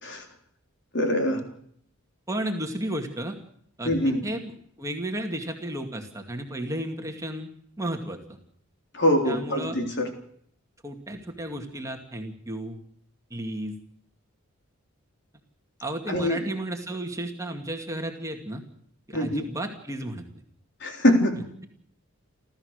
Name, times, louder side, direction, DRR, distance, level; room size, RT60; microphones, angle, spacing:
voice 1, 0.9-1.4 3.8-4.2 8.9-10.1 16.1-16.4 19.1-19.4 20.8-21.4, left 1 dB, 55° left, 3 dB, 3.6 m, -23 dB
voice 2, 2.3-3.4 3.8-7.5 7.8-8.4 9.3-9.8 10.8-12.8 13.3-13.7 15.8-18.6 19.1-20.3, right 1 dB, 15° right, 3 dB, 2.2 m, -33 dB
30.0 x 13.5 x 6.6 m, 0.68 s
head